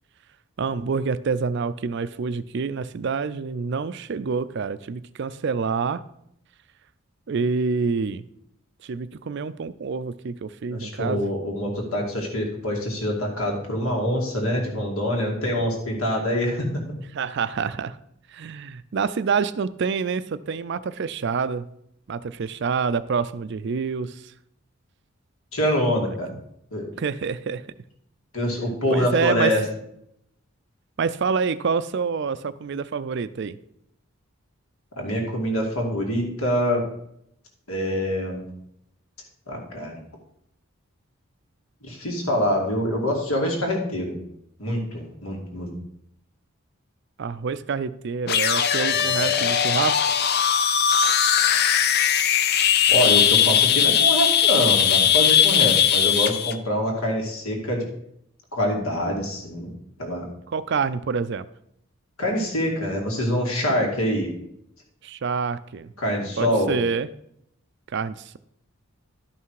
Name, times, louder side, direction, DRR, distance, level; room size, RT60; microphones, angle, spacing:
voice 1, 0.6-6.0 7.3-8.2 8.8-11.3 17.1-18.0 18.3-21.7 22.1-24.3 26.1-26.2 27.0-27.6 28.9-29.6 31.0-33.6 47.2-50.0 60.5-61.5 65.0-65.9 66.4-67.1 67.9-68.4, right 5 dB, 55° right, 15 dB, 0.4 m, -27 dB
voice 2, 10.7-16.7 25.5-26.3 26.7-26.9 28.3-29.6 35.0-36.9 37.7-38.5 39.5-40.0 41.8-44.2 44.6-45.7 49.2-49.3 52.9-57.9 58.5-59.7 60.0-60.3 62.2-64.3 66.0-66.8, equal, 75° left, 0 dB, 2.4 m, -25 dB
sound 1, 48.3-56.5, left 8 dB, 45° left, 0.5 m, -19 dB
11.5 x 5.8 x 4.7 m, 0.74 s
head